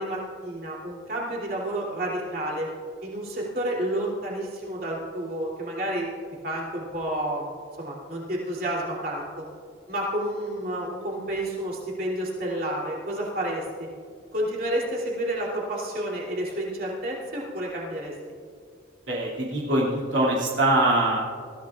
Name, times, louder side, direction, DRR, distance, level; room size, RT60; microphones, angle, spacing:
voice 1, 0.0-2.7 3.0-6.1 6.4-7.5 7.8-9.4 9.9-13.9 14.3-18.1, right 1 dB, 50° right, -3 dB, 3.1 m, -30 dB
voice 2, 19.1-21.2, right 1 dB, 85° right, -5 dB, 2.6 m, -23 dB
21.5 x 15.0 x 2.5 m, 2.2 s
head